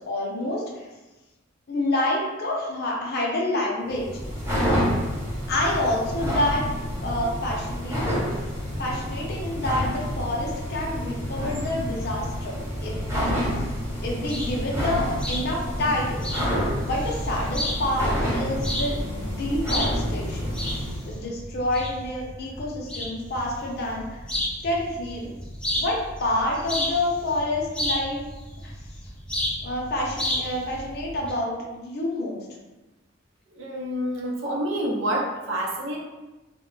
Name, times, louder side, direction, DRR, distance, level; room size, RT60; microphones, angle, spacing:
voice 1, 0.1-0.9 1.7-4.1 5.5-6.7 7.0-8.1 8.8-13.5 14.0-16.2 16.5-20.6 21.1-24.0 24.6-25.3 25.7-28.2 28.6-28.7 29.6-32.4, left 1 dB, 55° left, -2 dB, 0.6 m, -28 dB
sound 1, 3.9-21.1, equal, 15° right, 0.8 m, -28 dB
sound 2, 14.3-31.3, left 1 dB, 5° left, 0.4 m, -33 dB
voice 2, 33.5-36.0, right 1 dB, 80° right, -2 dB, 0.6 m, -28 dB
2.2 x 2.0 x 3.7 m, 1.1 s
head